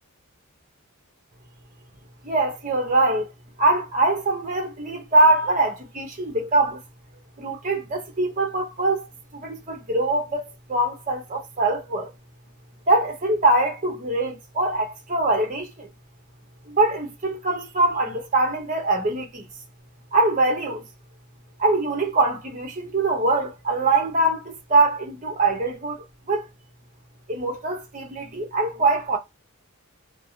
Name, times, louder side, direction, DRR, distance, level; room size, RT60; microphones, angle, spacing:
voice 1, 2.2-3.3 3.6-6.8 7.4-10.4 10.7-12.1 12.9-15.9 16.7-19.4 20.1-20.8 21.6-26.5 27.3-29.2, right 2 dB, 35° right, 0.9 m, -23 dB
3.3 x 2.0 x 2.7 m
head